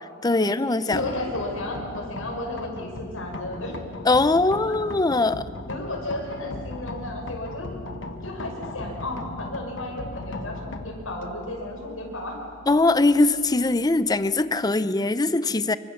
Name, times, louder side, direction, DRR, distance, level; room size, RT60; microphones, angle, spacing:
voice 1, 0.2-1.0 4.1-5.4 12.7-15.8, left 2 dB, 20° left, 13 dB, 0.6 m, -21 dB
voice 2, 0.9-3.8 4.6-4.7 5.7-7.7 8.2-12.4, left 1 dB, 80° left, 0 dB, 5.7 m, -33 dB
sound 1, 0.9-14.8, left 2 dB, 65° left, 1.3 m, -39 dB
25.0 x 24.5 x 7.2 m, 2.2 s
head